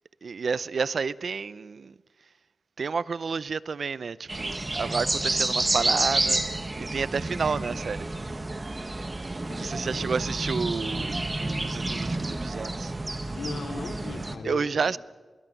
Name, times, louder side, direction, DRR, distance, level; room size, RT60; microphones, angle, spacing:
voice 1, 0.2-1.9 2.8-6.4 6.8-8.1 9.6-12.9 14.4-15.0, right 5 dB, 60° right, 0.6 m, -30 dB
sound 1, 4.3-14.4, right 2 dB, 25° right, 1.5 m, -29 dB
voice 2, 9.5-10.0 11.8-12.0 13.3-15.0, left 4 dB, 80° left, 2.6 m, -39 dB
21.5 x 18.5 x 9.0 m
wide cardioid pair, 105°, 0 cm